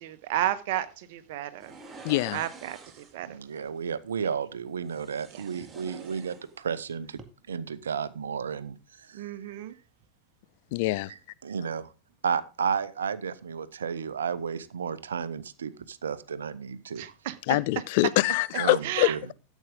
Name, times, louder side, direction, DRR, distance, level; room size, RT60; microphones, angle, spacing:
voice 1, 0.0-1.7 2.3-3.3 9.1-9.7 17.0-17.6 18.8-19.3, right 13 dB, 50° right, 1.3 m, -32 dB
sound 1, 1.6-3.2 4.8-6.8 7.1-7.2, right 4 dB, 15° right, 2.1 m, -47 dB
voice 2, 2.0-2.4 10.7-11.1 17.5-19.3, left 19 dB, 50° left, 0.4 m, -25 dB
voice 3, 3.2-7.2 7.5-9.5 11.1-11.9 12.2-17.1 18.6-19.2, right 6 dB, 65° right, 0.8 m, -33 dB
13.5 x 8.3 x 3.8 m
figure-of-eight pair, 90°, 0 cm